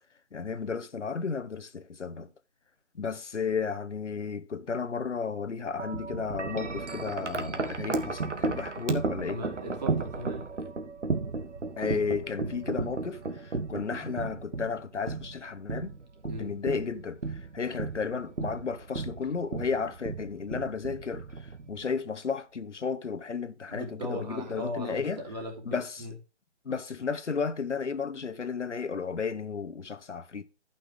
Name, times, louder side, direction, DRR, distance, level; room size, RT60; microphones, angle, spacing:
voice 1, 0.3-2.3 2.9-9.4 11.8-15.9 16.2-25.2 25.6-26.1 26.6-30.4, left 5 dB, 75° left, 1.1 m, -33 dB
Wind chime, 5.8-22.0, right 3 dB, 80° right, 1.5 m, -34 dB
voice 2, 9.3-10.4 16.3-16.5 23.7-25.6 26.0-26.1, right 1 dB, 35° right, 2.8 m, -37 dB
12.0 x 5.9 x 3.6 m
figure-of-eight pair, 160°, 36 cm